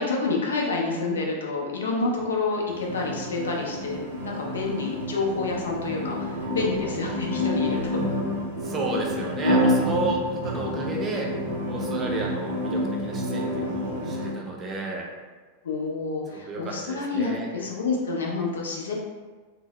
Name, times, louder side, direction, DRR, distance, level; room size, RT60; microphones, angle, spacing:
voice 1, 0.0-7.8 15.6-18.9, left 3 dB, 65° left, -1 dB, 0.5 m, -28 dB
sound 1, 2.7-14.3, equal, 75° right, 0.6 m, -28 dB
voice 2, 8.6-11.3 11.7-15.1 16.3-17.5, right 2 dB, 25° right, -1 dB, 0.5 m, -32 dB
2.6 x 2.0 x 3.0 m, 1.4 s
figure-of-eight pair, 90°, 0 cm